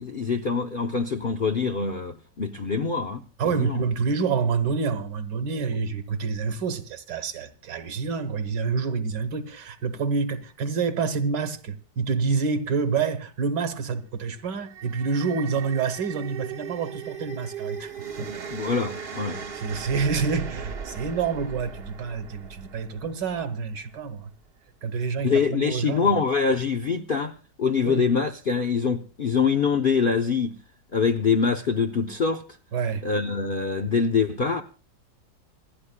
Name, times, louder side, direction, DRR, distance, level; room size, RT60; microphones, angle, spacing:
voice 1, 0.0-3.8 18.2-19.4 25.2-27.3 27.6-30.5 30.9-32.4 33.0-34.6, left 5 dB, 55° left, 0.6 m, -24 dB
voice 2, 3.4-18.5 19.5-24.3 24.8-26.1 27.8-28.0 32.7-33.1, right 5 dB, 75° right, 1.8 m, -28 dB
sound 1, 14.4-23.7, right 7 dB, 45° right, 1.0 m, -38 dB
27.5 x 9.8 x 2.2 m
omnidirectional pair, 1.9 m